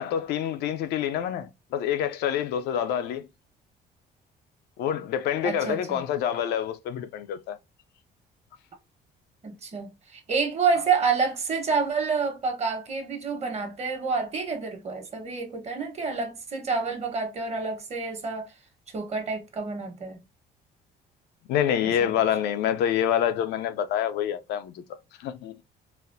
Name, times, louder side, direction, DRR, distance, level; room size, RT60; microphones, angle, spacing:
voice 1, 0.0-3.3 4.8-7.6 21.5-24.8 25.2-25.6, left 9 dB, 80° left, 0.5 m, -27 dB
voice 2, 5.4-6.0 9.4-18.5 18.9-20.2 22.0-22.1, right 5 dB, 40° right, 1.2 m, -28 dB
4.1 x 2.0 x 2.6 m
cardioid pair, 110°, 17 cm